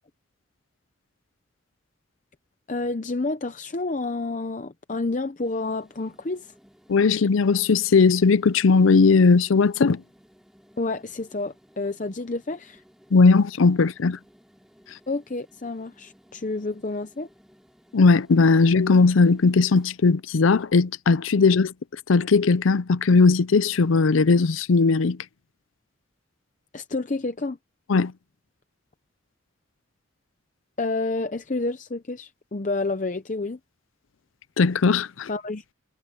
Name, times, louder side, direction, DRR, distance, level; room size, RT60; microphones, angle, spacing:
voice 1, 2.7-6.5 10.8-12.8 15.1-17.3 26.7-27.6 30.8-33.6 35.3-35.6, left 3 dB, 40° left, 0.7 m, -29 dB
sound 1, 5.4-20.8, equal, ahead, 5.8 m, -58 dB
voice 2, 6.9-10.0 13.1-14.2 17.9-21.7 22.1-25.2 27.9-28.1 34.6-35.3, left 4 dB, 85° left, 0.5 m, -18 dB
head